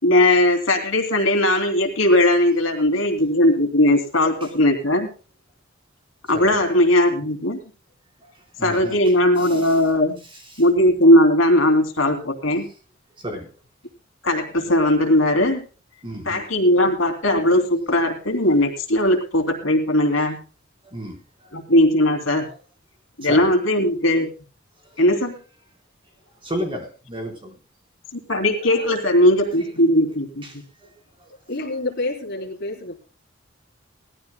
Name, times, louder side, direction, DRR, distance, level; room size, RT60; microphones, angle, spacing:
voice 1, 0.0-5.1 6.3-7.6 8.6-10.2 10.6-12.7 14.2-15.6 16.2-20.4 21.5-22.5 23.2-24.3 25.0-25.3 28.1-30.4, left 1 dB, 80° left, 4 dB, 3.0 m, -18 dB
voice 2, 6.3-6.6 8.2-9.7 10.5-10.6 13.2-13.5 16.0-16.4 20.8-21.2 22.4-22.6 23.2-23.6 24.9-25.0 26.4-27.6 28.6-29.5 30.4-30.9 31.2-31.3, equal, 25° right, 2 dB, 4.2 m, -34 dB
voice 3, 31.5-32.9, left 2 dB, 55° left, -1 dB, 3.7 m, -28 dB
20.0 x 14.5 x 2.2 m, 0.36 s
head